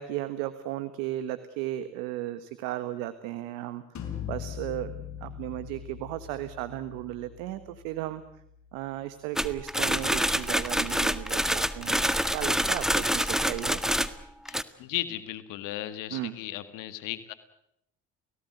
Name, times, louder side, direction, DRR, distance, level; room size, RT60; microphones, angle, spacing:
voice 1, 0.0-3.8 4.3-4.9 5.2-8.2 8.7-13.8 16.1-16.4, right 14 dB, 85° right, 12 dB, 1.4 m, -35 dB
sound 1, 4.0-9.6, left 9 dB, 60° left, 5.7 m, -42 dB
sound 2, 9.4-14.6, equal, ahead, 1.8 m, -27 dB
voice 2, 14.5-17.3, left 14 dB, 80° left, 12 dB, 1.8 m, -36 dB
29.5 x 18.5 x 7.9 m, 0.77 s
hypercardioid pair, 60°, 32 cm